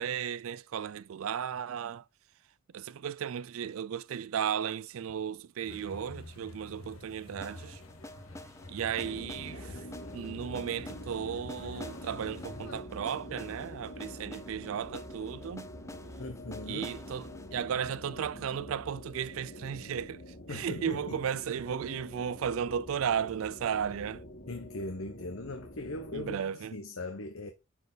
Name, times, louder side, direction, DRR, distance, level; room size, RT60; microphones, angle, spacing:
voice 1, 0.0-2.0 2.7-7.8 8.7-9.8 10.1-15.7 16.7-20.2 20.5-24.2 26.1-26.8, right 8 dB, 80° right, 0.4 m, -35 dB
sound 1, 5.6-12.8, left 2 dB, 90° left, 1.6 m, -49 dB
sound 2, 7.4-19.3, left 1 dB, 15° left, 0.5 m, -49 dB
sound 3, 9.0-26.4, equal, 55° left, 3.0 m, -46 dB
voice 2, 16.2-16.9 20.5-21.2 24.5-27.5, left 2 dB, 75° left, 1.0 m, -39 dB
9.8 x 4.5 x 4.0 m
head